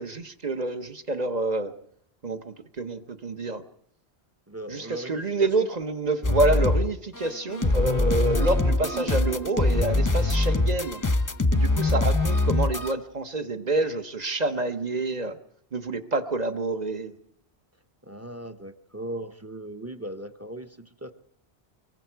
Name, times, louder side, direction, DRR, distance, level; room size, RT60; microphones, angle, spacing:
voice 1, 0.0-1.7 2.2-3.6 4.7-11.0 11.5-15.4 15.7-17.1, right 2 dB, 40° right, 8 dB, 1.1 m, -28 dB
voice 2, 4.5-5.7 11.7-12.1 18.0-21.1, right 1 dB, 15° right, 8 dB, 0.9 m, -38 dB
sound 1, 6.2-6.9 7.1-12.9, left 2 dB, 20° left, 0.8 m, -23 dB
sound 2, 8.3-11.6 11.9-12.0, right 5 dB, 75° right, 1.4 m, -39 dB
25.0 x 22.5 x 4.6 m, 0.69 s
omnidirectional pair, 1.1 m